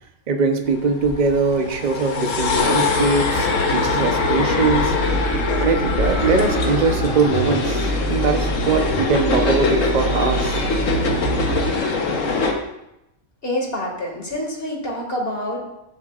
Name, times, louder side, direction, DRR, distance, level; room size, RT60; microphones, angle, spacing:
voice 1, 0.3-4.9 5.6-10.6 11.5-11.6, right 4 dB, 40° right, 4 dB, 0.9 m, -21 dB
sound 1, 0.7-12.5, left 3 dB, 80° left, 1.5 m, -22 dB
sound 2, 4.7-11.7, right 2 dB, 80° right, 1.3 m, -27 dB
voice 2, 13.4-15.6, left 1 dB, 50° left, 0 dB, 2.2 m, -26 dB
14.0 x 7.7 x 2.5 m, 0.87 s
omnidirectional pair, 1.3 m